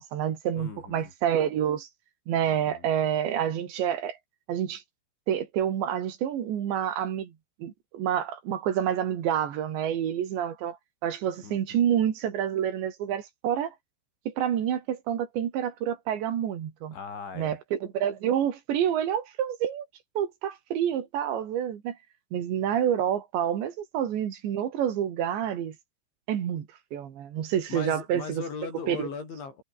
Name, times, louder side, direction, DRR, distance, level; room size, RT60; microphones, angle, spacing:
voice 1, 0.0-1.9 2.3-4.2 4.5-4.8 5.3-7.3 7.6-10.8 11.0-13.7 14.3-17.0 17.4-19.9 20.2-22.0 22.3-25.8 26.3-28.4 28.9-29.1, right 9 dB, 75° right, 4.8 m, -28 dB
voice 2, 0.6-1.1 2.5-2.9 11.4-11.9 16.9-17.6 27.7-29.6, left 5 dB, 85° left, 9.2 m, -39 dB
omnidirectional pair, 5.2 m